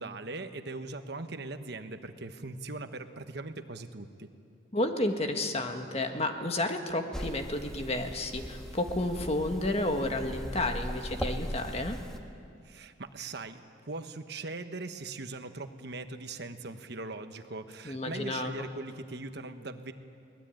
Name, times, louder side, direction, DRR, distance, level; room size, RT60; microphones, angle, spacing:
voice 1, 0.0-4.3 12.6-19.9, right 3 dB, 60° right, 8 dB, 1.3 m, -40 dB
voice 2, 4.7-12.0 17.8-18.7, left 1 dB, 30° left, 5 dB, 1.6 m, -31 dB
sound 1, 7.1-12.2, equal, 5° left, 1.4 m, -39 dB
23.0 x 19.5 x 9.1 m, 2.5 s
head